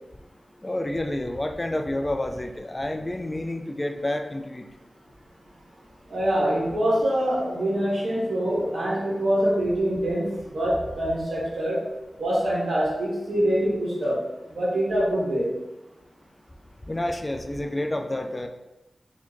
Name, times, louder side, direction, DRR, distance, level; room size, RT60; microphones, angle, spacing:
voice 1, 0.6-4.6 16.9-18.5, left 1 dB, 25° left, 5 dB, 0.3 m, -29 dB
voice 2, 6.1-11.8 12.2-14.2 14.5-15.5, right 1 dB, 80° right, -5 dB, 1.3 m, -24 dB
4.1 x 2.8 x 2.9 m, 0.98 s
wide cardioid pair, 70°, 0 cm